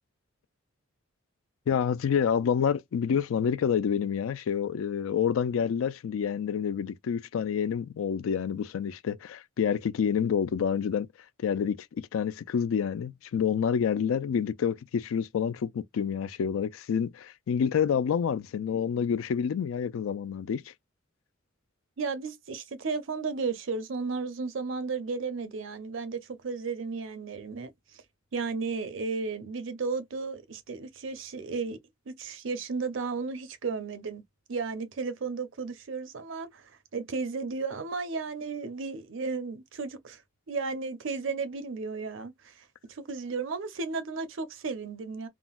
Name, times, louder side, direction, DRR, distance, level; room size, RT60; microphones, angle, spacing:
voice 1, 1.7-11.1 11.4-20.7, left 7 dB, 80° left, 0.3 m, -28 dB
voice 2, 22.0-27.7 28.3-31.8 32.1-34.2 34.5-40.2 40.5-45.3, right 4 dB, 65° right, 0.6 m, -34 dB
3.7 x 2.0 x 2.3 m
head